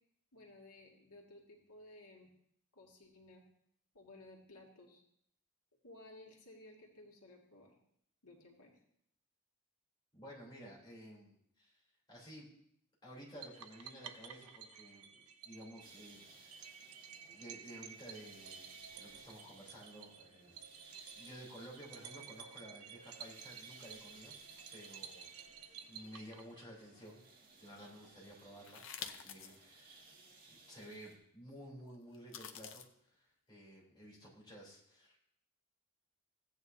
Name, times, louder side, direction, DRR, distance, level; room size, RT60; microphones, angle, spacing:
voice 1, 0.3-2.3 2.7-3.4 3.9-5.0 5.8-7.7 8.2-8.8, left 2 dB, 90° left, -1 dB, 2.1 m, -57 dB
voice 2, 10.1-12.5 13.0-16.8 17.2-24.3 24.7-27.2 27.6-30.2 30.5-35.2, equal, 20° left, -5 dB, 3.3 m, -54 dB
sound 1, 13.4-26.9, right 7 dB, 85° right, 0.7 m, -53 dB
sound 2, 15.8-31.2, right 3 dB, 40° right, 2.0 m, -60 dB
sound 3, 28.6-29.6 30.1-30.2 32.1-32.9, left 7 dB, 60° left, 0.7 m, -47 dB
15.5 x 9.3 x 2.7 m, 0.71 s
head